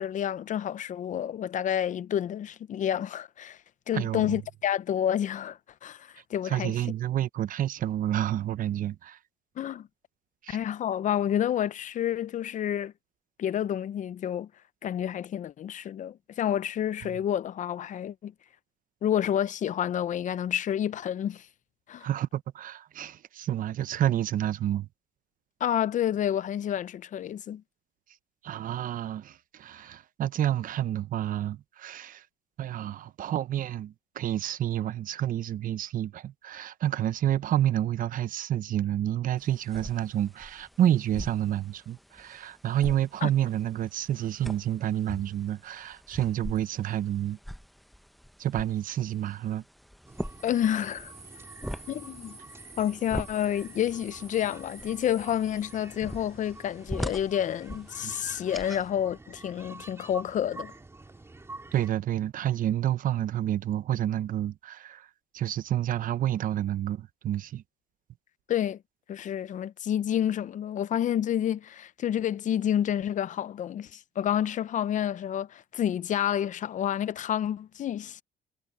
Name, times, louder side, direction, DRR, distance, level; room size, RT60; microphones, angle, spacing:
voice 1, 0.0-3.6 3.9-6.7 9.6-9.9 10.5-12.9 13.4-14.5 14.8-18.3 19.0-21.5 21.9-22.1 25.6-27.6 43.2-43.3 50.4-51.1 51.9-52.4 52.8-60.7 68.5-68.8 69.1-78.2, left 10 dB, 50° left, 0.6 m, -29 dB
voice 2, 3.9-4.4 6.4-9.2 10.4-10.6 22.0-24.9 28.4-32.2 32.6-47.4 48.4-49.6 58.0-58.2 61.7-65.1 65.3-67.6, right 11 dB, 55° right, 0.8 m, -29 dB
sound 1, 39.4-58.9, equal, ahead, 0.6 m, -42 dB
sound 2, 50.0-61.9, right 2 dB, 15° right, 2.9 m, -47 dB
cardioid pair, 110°, 17 cm